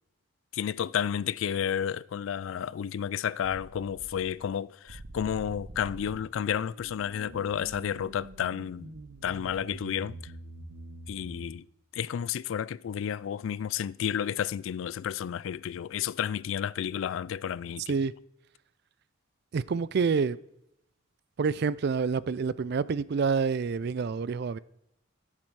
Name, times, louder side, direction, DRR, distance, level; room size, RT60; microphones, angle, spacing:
voice 1, 0.5-8.9 9.2-10.3 11.1-11.6 11.9-18.0, left 9 dB, 65° left, 0.3 m, -31 dB
sound 1, 3.4-4.5 4.9-11.5, right 2 dB, 90° right, 1.1 m, -46 dB
voice 2, 19.5-20.4 21.4-24.6, right 5 dB, 50° right, 0.4 m, -27 dB
11.5 x 7.6 x 4.7 m
head